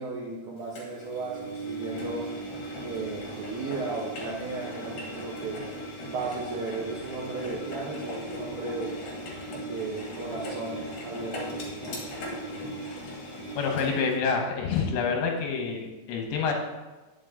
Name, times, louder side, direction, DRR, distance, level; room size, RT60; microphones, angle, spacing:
voice 1, 0.0-2.3 2.8-5.6 6.1-8.9 9.6-11.5 11.8-12.0, right 3 dB, 75° right, -5 dB, 1.8 m, -35 dB
Engine, 0.7-14.2, right 1 dB, 50° left, 2.9 m, -38 dB
voice 2, 13.6-16.5, left 5 dB, 70° left, 2 dB, 3.0 m, -27 dB
10.5 x 7.8 x 3.8 m, 1.2 s
omnidirectional pair, 5.8 m